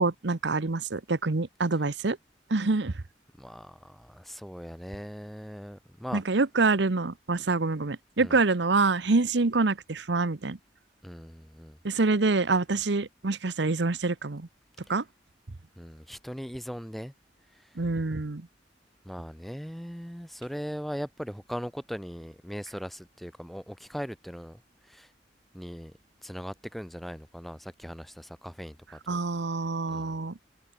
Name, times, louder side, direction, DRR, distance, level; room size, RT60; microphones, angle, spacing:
voice 1, 0.0-2.2 2.5-2.9 6.1-10.6 11.8-14.5 14.9-15.0 17.8-18.5 29.1-30.4, right 3 dB, 70° right, 0.9 m, -26 dB
voice 2, 3.4-6.2 8.2-8.4 11.0-11.8 15.8-17.1 19.1-24.6 24.9-25.1 25.5-25.9 26.2-29.2 29.9-30.2, equal, ahead, 1.9 m, -39 dB
head